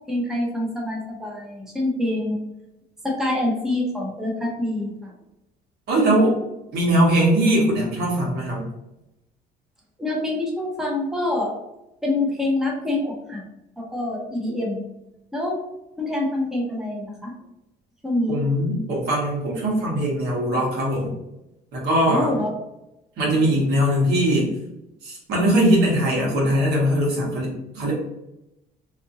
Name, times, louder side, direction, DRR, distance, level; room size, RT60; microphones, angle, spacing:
voice 1, 0.1-2.4 3.0-5.1 10.0-11.5 12.0-13.4 13.8-14.8 15.3-15.6 16.0-17.3 18.0-18.4 22.1-22.5, left 1 dB, 5° right, -2 dB, 0.7 m, -26 dB
voice 2, 5.9-6.4 6.7-8.6 18.3-21.1 21.7-22.4 23.2-24.5 25.0-27.9, right 1 dB, 75° right, -3 dB, 1.3 m, -21 dB
2.7 x 2.5 x 2.6 m, 0.90 s
cardioid pair, 110°, 17 cm